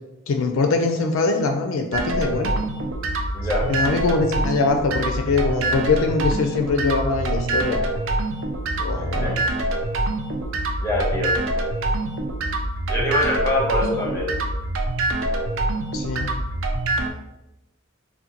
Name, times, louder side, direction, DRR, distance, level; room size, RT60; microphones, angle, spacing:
voice 1, 0.3-2.5 3.7-7.8 8.8-9.4 15.9-16.3, left 3 dB, 65° left, 4 dB, 0.3 m, -22 dB
sound 1, 1.9-17.1, right 2 dB, 60° right, 0.4 m, -25 dB
voice 2, 3.3-3.7 9.0-9.4 10.8-11.3 12.9-14.3, left 1 dB, 15° left, -2 dB, 0.6 m, -24 dB
3.6 x 2.1 x 2.8 m, 0.93 s
head